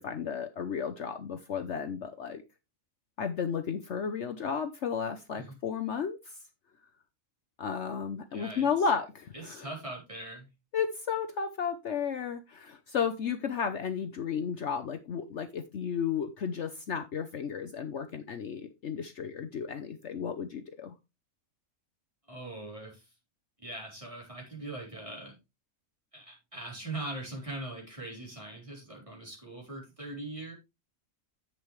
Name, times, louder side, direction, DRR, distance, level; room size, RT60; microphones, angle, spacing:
voice 1, 0.0-2.4 3.2-6.3 7.6-9.6 10.7-20.9, left 6 dB, 60° left, 7 dB, 1.1 m, -33 dB
voice 2, 8.3-8.9 9.3-10.5 22.3-23.1 23.6-25.4 26.1-30.5, right 2 dB, 25° right, -2 dB, 4.2 m, -41 dB
10.5 x 7.7 x 3.2 m, 0.25 s
omnidirectional pair, 1.4 m